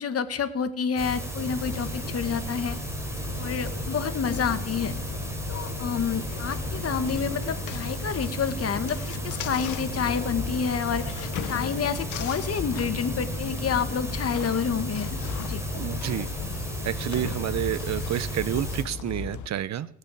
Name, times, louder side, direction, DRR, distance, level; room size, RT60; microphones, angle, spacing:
voice 1, 0.0-2.8 3.4-4.9 5.5-15.2 15.5-15.6, left 6 dB, 50° left, 10 dB, 1.7 m, -29 dB
sound 1, 1.0-18.8, right 1 dB, 10° right, 3.4 m, -34 dB
sound 2, 1.4-19.5, left 9 dB, 80° left, 1.1 m, -37 dB
voice 2, 15.7-16.3 16.8-19.9, right 12 dB, 65° right, 17 dB, 0.9 m, -29 dB
18.5 x 6.5 x 8.4 m, 0.68 s
cardioid pair, 90°, 30 cm